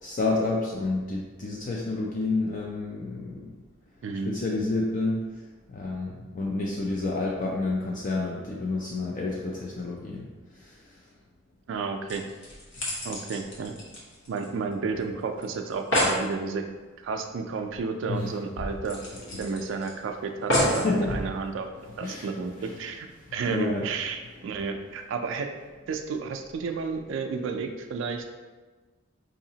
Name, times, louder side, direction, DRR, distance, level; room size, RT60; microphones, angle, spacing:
voice 1, 0.0-3.6 4.2-5.3 5.7-10.3 10.5-11.0 18.1-18.3 19.2-19.6 20.6-21.2 22.0-22.3 22.6-22.8 23.4-23.9, left 3 dB, 40° left, -2 dB, 0.4 m, -29 dB
voice 2, 4.0-4.3 11.7-12.2 13.0-13.7 14.3-16.6 17.0-19.0 19.4-21.7 22.0-25.5 25.9-28.3, right 5 dB, 65° right, 5 dB, 0.3 m, -32 dB
sound 1, 11.7-11.8 12.1-14.7 15.0-15.1 15.4-15.5 15.7-16.2 17.7-17.8 18.2-18.3 18.9-19.9 20.5-20.9 21.6-21.7, equal, 70° left, 1.1 m, -28 dB
4.8 x 2.8 x 2.7 m, 1.3 s
head